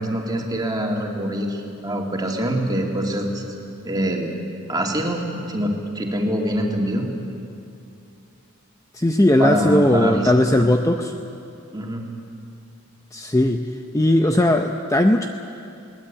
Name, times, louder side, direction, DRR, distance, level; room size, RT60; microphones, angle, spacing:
voice 1, 0.0-3.4 3.8-4.3 4.7-7.0 9.4-10.6 11.7-12.0, equal, 20° right, 1 dB, 2.5 m, -24 dB
voice 2, 8.9-11.1 13.1-13.7 13.9-15.3, left 1 dB, 15° left, 5 dB, 0.7 m, -18 dB
21.5 x 19.0 x 8.7 m, 2.6 s
head